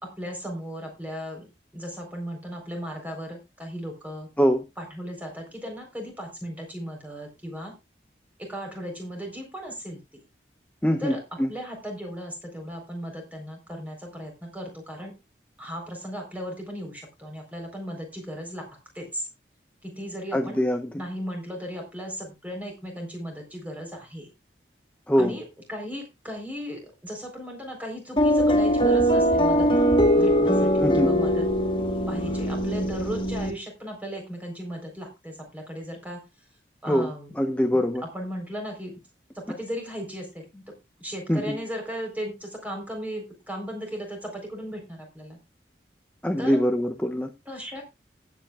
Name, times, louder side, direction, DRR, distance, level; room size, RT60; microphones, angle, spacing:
voice 1, 0.0-1.5 1.7-4.3 4.8-7.7 8.4-10.0 11.0-11.2 11.5-15.1 15.6-18.7 18.9-19.3 19.8-20.6 21.0-24.3 25.2-29.7 30.1-31.5 32.1-36.2 36.8-37.3 37.7-37.8 38.1-38.9 39.3-40.7 41.0-45.4 46.4-46.6 47.5-47.8, equal, 10° right, 2 dB, 4.1 m, -36 dB
voice 2, 10.8-11.5 20.3-21.0 25.1-25.4 30.8-31.1 36.9-38.0 41.3-41.6 46.2-47.3, equal, 10° left, 5 dB, 0.7 m, -24 dB
sound 1, 28.2-33.5, equal, 30° left, 1.5 m, -21 dB
19.5 x 8.3 x 2.4 m, 0.25 s
head